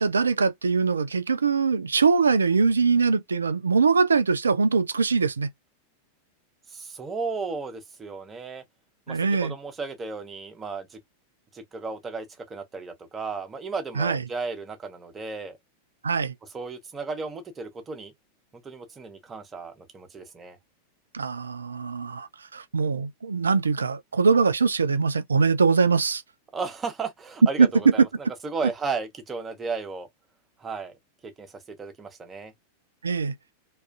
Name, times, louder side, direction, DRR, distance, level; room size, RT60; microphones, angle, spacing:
voice 1, 0.0-5.5 9.1-9.5 14.0-14.2 16.0-16.3 21.1-26.2 27.6-27.7 33.0-33.4, right 5 dB, 75° right, 0.3 m, -22 dB
voice 2, 6.7-8.6 9.1-11.0 11.5-15.6 16.5-18.1 18.6-20.6 26.5-28.0 28.4-30.1 30.6-31.0 31.2-32.5, right 4 dB, 20° right, 0.7 m, -34 dB
2.3 x 2.3 x 2.3 m
figure-of-eight pair, 90°, 0 cm